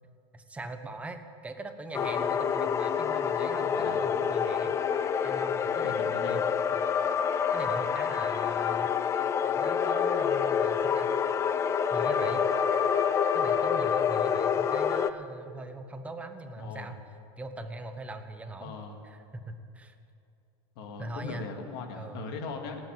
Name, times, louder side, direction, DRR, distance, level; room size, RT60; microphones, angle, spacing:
voice 1, 0.3-4.8 5.2-6.8 7.5-8.9 9.6-11.2 11.9-12.5 13.3-16.9 17.4-18.7 19.0-19.9 21.0-21.5 22.0-22.2, right 2 dB, 10° right, 7 dB, 1.1 m, -41 dB
sound 1, 1.9-15.1, left 7 dB, 20° left, 0.5 m, -27 dB
voice 2, 3.7-4.2 5.8-6.4 16.6-17.0 18.6-19.0 20.8-22.8, left 4 dB, 65° left, 4 dB, 2.1 m, -40 dB
18.0 x 8.5 x 9.3 m, 2.6 s
supercardioid pair, 145°, 13 cm